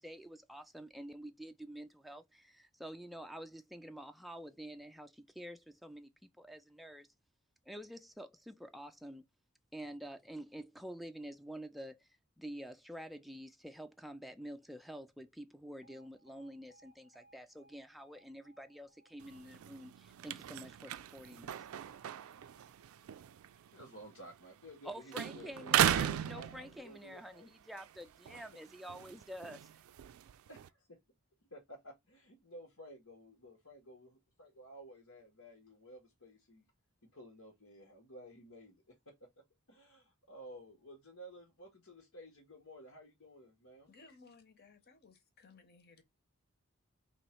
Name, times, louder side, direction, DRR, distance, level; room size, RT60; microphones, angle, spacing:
voice 1, 0.0-7.1 7.7-9.3 9.7-12.1 12.4-21.6 24.8-29.8, equal, ahead, 0.3 m, -48 dB
Alarm, 15.8-23.9, right 1 dB, 75° left, 1.5 m, -69 dB
sound 1, 19.2-24.8 25.1-27.1 27.6-30.7, right 10 dB, 80° right, 0.3 m, -37 dB
voice 2, 23.7-27.5 30.5-31.0 31.5-36.6 37.1-43.9, equal, 90° left, 1.7 m, -54 dB
voice 3, 43.9-46.0, left 4 dB, 50° left, 1.1 m, -60 dB
3.1 x 3.0 x 4.4 m
head